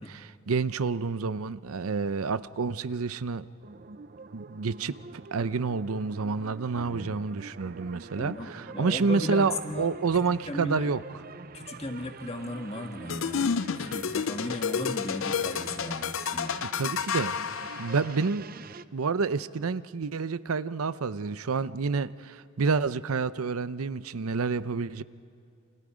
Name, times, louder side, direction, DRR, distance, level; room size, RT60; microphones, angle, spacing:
voice 1, 0.0-3.5 4.3-11.0 16.8-17.4 17.8-18.5 18.9-25.0, right 4 dB, 90° right, 15 dB, 0.6 m, -29 dB
sound 1, 3.6-18.8, right 4 dB, 45° right, 0.5 m, -46 dB
voice 2, 6.7-7.1 8.2-10.9 11.5-16.6, left 1 dB, 30° left, 4 dB, 1.7 m, -37 dB
sound 2, 13.1-18.3, left 7 dB, 65° left, 0.5 m, -30 dB
28.5 x 28.0 x 5.1 m, 2.5 s
head